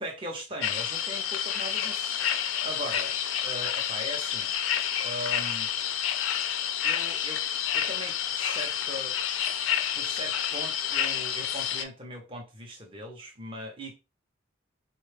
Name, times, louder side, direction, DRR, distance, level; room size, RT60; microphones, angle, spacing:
voice 1, 0.0-3.1 3.4-4.6 5.0-5.7 6.8-7.4 7.7-9.2 9.9-14.0, equal, 25° right, 0.6 m, -39 dB
sound 1, 0.6-11.8, left 9 dB, 70° left, 0.4 m, -29 dB
3.4 x 2.2 x 3.2 m
head